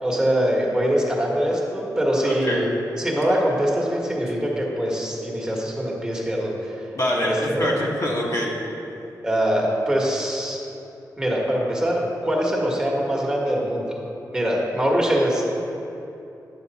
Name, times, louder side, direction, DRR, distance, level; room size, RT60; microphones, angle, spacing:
voice 1, 0.0-2.7 2.9-6.7 7.2-7.7 9.2-10.6 11.2-13.9 14.3-15.4, equal, 10° right, -3 dB, 1.4 m, -23 dB
voice 2, 2.2-2.6 6.9-8.5, equal, 50° left, -3 dB, 1.4 m, -24 dB
10.0 x 6.3 x 4.1 m, 2.8 s
wide cardioid pair, 125°, 7 cm